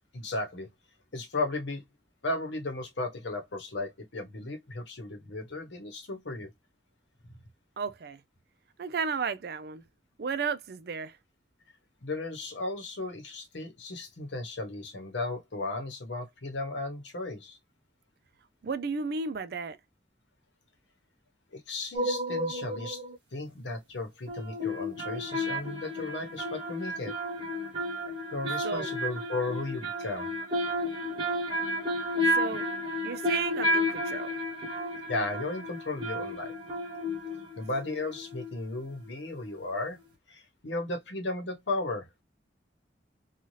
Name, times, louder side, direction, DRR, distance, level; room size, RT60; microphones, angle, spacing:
voice 1, 0.1-0.7 1.1-1.8 2.2-6.5 12.0-17.6 21.5-23.0 23.3-27.1 28.3-30.3 35.1-36.5 37.6-40.0 40.3-42.1, left 2 dB, 85° left, 0.9 m, -35 dB
voice 2, 7.8-8.2 8.8-9.8 10.2-11.2 18.6-19.8 28.6-28.9 31.0-31.1 32.3-32.7 33.0-34.3, right 5 dB, 60° right, 0.4 m, -33 dB
sound 1, 22.0-23.2 24.3-38.8 39.1-39.2, left 1 dB, 30° right, 1.2 m, -32 dB
2.7 x 2.3 x 3.0 m
head